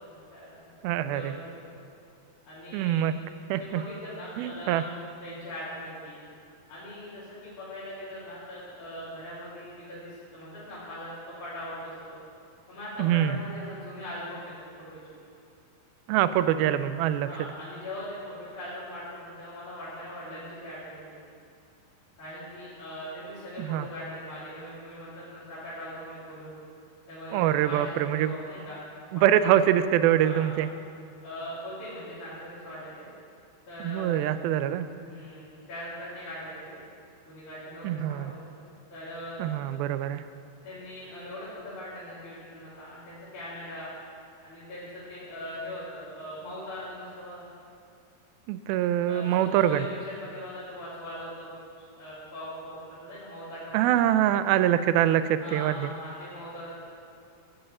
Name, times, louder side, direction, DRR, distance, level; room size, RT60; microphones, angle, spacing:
voice 1, 0.0-1.8 2.5-3.0 3.6-6.2 6.7-12.1 12.7-14.5 14.8-14.9 17.2-21.2 22.2-26.5 27.1-29.2 30.2-30.6 31.2-33.1 33.7-34.2 34.9-36.8 37.3-38.4 38.9-39.5 40.6-43.9 44.4-47.5 49.1-54.2 55.4-56.8, equal, 55° left, -13 dB, 4.7 m, -41 dB
voice 2, 0.8-1.3 2.7-3.1 3.5-3.8 4.4-4.8 13.0-13.4 16.1-17.3 23.6-23.9 27.3-28.3 29.1-30.7 33.8-34.9 37.8-38.3 39.4-40.2 48.5-49.9 53.7-55.9, right 11 dB, 90° right, 12 dB, 2.4 m, -24 dB
11.0 x 7.9 x 8.0 m, 2.4 s
omnidirectional pair, 4.2 m